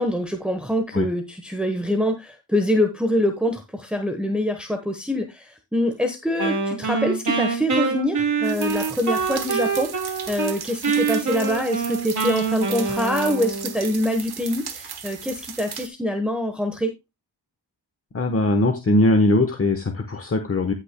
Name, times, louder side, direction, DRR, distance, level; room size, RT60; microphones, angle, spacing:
voice 1, 0.0-16.9, left 1 dB, ahead, 4 dB, 1.1 m, -25 dB
Wind instrument woodwind instrument, 6.4-10.5 10.8-13.7, right 5 dB, 40° right, 2.7 m, -25 dB
sound 1, 8.4-15.9, right 7 dB, 60° right, 1.3 m, -36 dB
voice 2, 18.1-20.7, left 2 dB, 30° left, 6 dB, 1.2 m, -20 dB
16.0 x 5.9 x 2.2 m, 0.23 s
cardioid pair, 75°, 44 cm